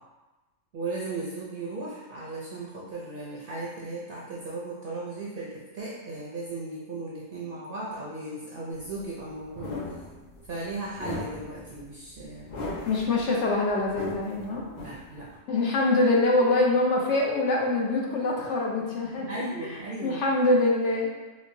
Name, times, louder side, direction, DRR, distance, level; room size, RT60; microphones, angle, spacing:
voice 1, 0.7-9.8 10.5-12.5 14.8-15.3 19.3-20.2, right 2 dB, 60° right, -6 dB, 0.5 m, -36 dB
sound 1, 8.7-15.3, left 2 dB, 40° left, 0.7 m, -39 dB
voice 2, 12.9-14.7 15.5-19.3 19.7-21.1, left 2 dB, 70° left, -2 dB, 0.9 m, -24 dB
4.2 x 2.0 x 2.6 m, 1.2 s
omnidirectional pair, 1.3 m